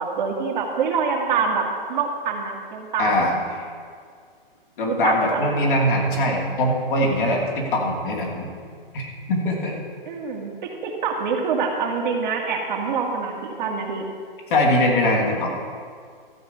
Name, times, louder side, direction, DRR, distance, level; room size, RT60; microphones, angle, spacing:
voice 1, 0.0-3.3 4.8-5.8 10.1-14.1, right 5 dB, 50° right, 1 dB, 1.9 m, -26 dB
voice 2, 3.0-3.3 4.8-8.5 8.9-9.0 9.3-9.7 14.5-15.5, left 1 dB, 60° left, -1 dB, 2.9 m, -21 dB
13.5 x 5.0 x 8.5 m, 2.1 s
hypercardioid pair, 140°, 29 cm